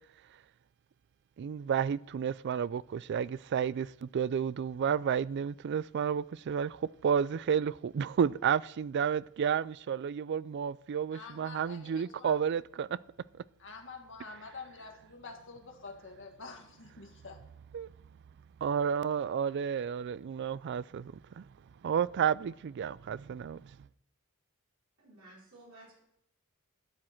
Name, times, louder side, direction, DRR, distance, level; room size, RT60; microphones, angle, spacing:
voice 1, 1.4-13.0 17.7-17.9 18.6-21.4 21.8-23.6, right 7 dB, 50° right, 0.3 m, -31 dB
voice 2, 11.1-12.4 13.6-17.4, left 4 dB, 60° left, 1.8 m, -47 dB
voice 3, 25.0-26.0, right 1 dB, 80° right, 5.0 m, -55 dB
12.0 x 10.0 x 4.5 m
head